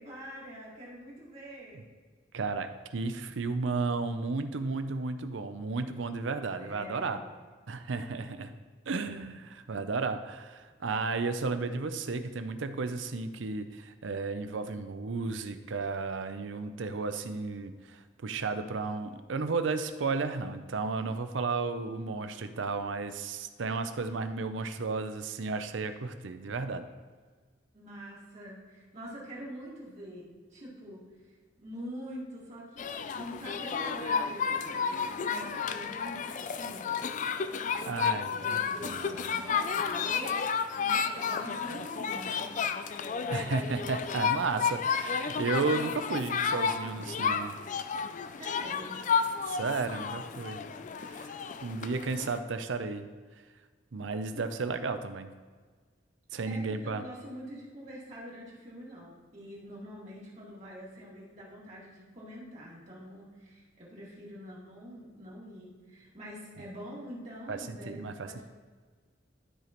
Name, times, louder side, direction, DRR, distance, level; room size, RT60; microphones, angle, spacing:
voice 1, 0.0-1.8 6.6-7.2 27.7-31.0 31.6-37.0 37.6-37.9 38.3-42.5 48.3-49.1 54.3-54.4 56.5-68.4, equal, 35° right, -6 dB, 2.1 m, -45 dB
voice 2, 2.3-7.2 7.7-8.5 8.9-26.9 37.8-39.0 43.3-47.5 49.5-50.6 51.0-51.3 51.6-53.1 53.9-55.3 56.3-57.0 67.5-68.3, right 4 dB, 75° right, 9 dB, 0.6 m, -33 dB
sound 1, 32.8-52.4, left 6 dB, 40° left, 0.3 m, -32 dB
12.5 x 5.0 x 3.0 m, 1.5 s
head